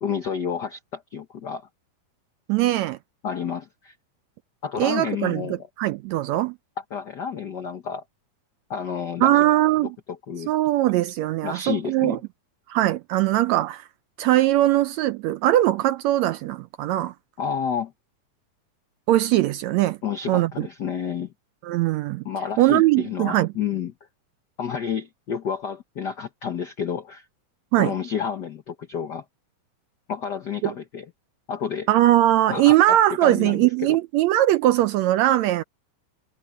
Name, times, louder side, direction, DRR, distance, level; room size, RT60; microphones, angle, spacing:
voice 1, 0.0-1.7 3.2-3.9 4.6-5.6 6.9-8.0 8.7-9.4 10.3-10.5 11.4-12.2 17.4-17.9 20.0-21.3 22.2-23.9 24.6-27.2 27.8-29.2 30.1-31.1 31.5-31.9 32.5-33.0 33.2-34.0, left 7 dB, 90° left, 0.9 m, -30 dB
voice 2, 2.5-3.0 4.8-6.5 9.2-10.0 10.5-12.2 12.7-13.8 14.2-17.1 19.1-20.0 20.3-20.7 21.6-22.2 22.6-23.5 27.7-27.9 30.6-30.7 31.9-35.6, right 14 dB, 80° right, 1.6 m, -20 dB
omnidirectional pair, 3.6 m